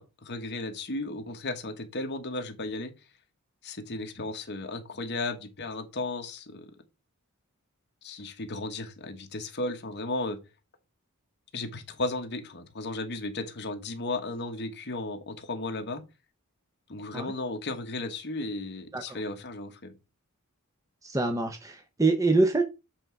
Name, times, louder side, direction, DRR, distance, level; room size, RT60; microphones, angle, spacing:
voice 1, 0.0-2.9 3.6-6.7 8.0-10.4 11.5-16.0 16.9-19.9, left 2 dB, 50° left, 1.2 m, -35 dB
voice 2, 21.0-22.6, right 3 dB, 15° right, 0.7 m, -25 dB
7.6 x 3.7 x 4.5 m
head